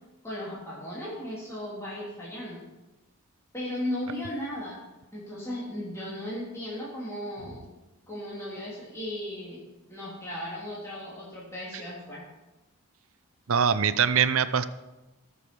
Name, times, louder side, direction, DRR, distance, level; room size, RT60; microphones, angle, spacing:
voice 1, 0.2-2.6 3.5-4.8 5.1-7.7 8.1-9.6 9.9-12.2, left 1 dB, 15° left, -8 dB, 3.4 m, -36 dB
voice 2, 13.5-14.6, right 7 dB, 70° right, 12 dB, 0.6 m, -23 dB
21.0 x 7.1 x 4.6 m, 1.1 s
head